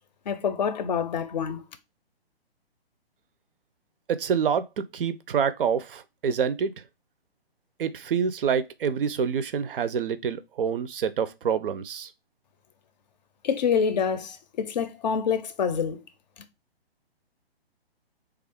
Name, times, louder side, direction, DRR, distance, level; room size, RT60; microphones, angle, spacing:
voice 1, 0.3-1.6 13.4-16.0, left 7 dB, 45° left, 0.5 m, -26 dB
voice 2, 4.1-6.7 7.8-12.1, right 7 dB, 60° right, 0.5 m, -27 dB
3.3 x 2.4 x 3.4 m
figure-of-eight pair, 135°, 31 cm